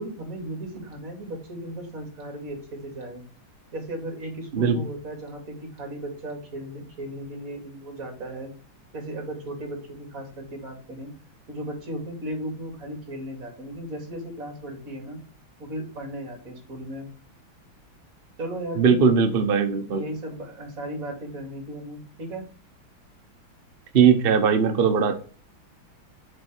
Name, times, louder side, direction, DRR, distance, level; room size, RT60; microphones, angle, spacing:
voice 1, 0.0-3.2 3.7-8.5 8.9-11.1 11.5-15.2 15.6-17.1 18.4-19.0 19.9-22.5, right 1 dB, 40° right, 3 dB, 2.7 m, -36 dB
voice 2, 18.8-20.0 23.9-25.2, right 6 dB, 60° right, 8 dB, 0.6 m, -19 dB
6.4 x 5.9 x 4.4 m, 0.38 s
omnidirectional pair, 2.3 m